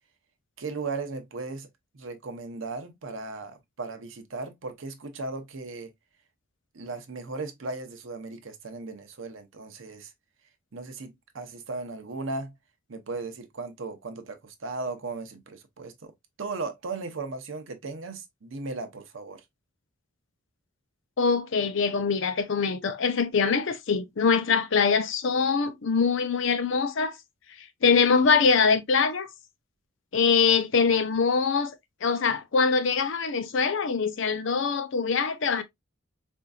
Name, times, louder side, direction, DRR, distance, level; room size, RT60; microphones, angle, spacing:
voice 1, 0.6-1.7 1.9-5.9 6.7-10.1 10.7-12.5 12.9-16.1 16.4-19.4, right 3 dB, 65° right, 0.7 m, -36 dB
voice 2, 21.2-27.1 27.6-29.3 30.1-31.8 32.0-35.6, left 5 dB, 65° left, 0.6 m, -23 dB
4.3 x 2.6 x 2.3 m
head